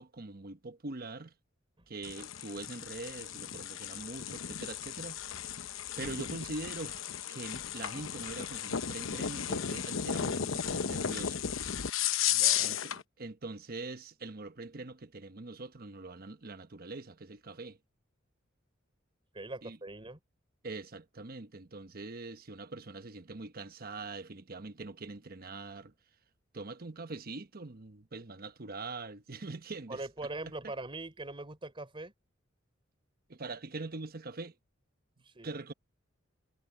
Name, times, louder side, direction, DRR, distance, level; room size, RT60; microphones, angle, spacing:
voice 1, 0.0-1.3 1.9-5.2 6.0-11.4 12.6-17.8 19.6-19.8 20.6-25.9 26.5-30.1 30.5-30.7 33.3-34.5 35.4-35.7, right 3 dB, 50° right, 1.1 m, -43 dB
sound 1, 2.0-13.0, left 9 dB, 85° left, 0.9 m, -34 dB
voice 2, 12.3-13.0 19.3-20.2 29.9-32.1 35.2-35.6, right 2 dB, 25° right, 3.6 m, -42 dB
head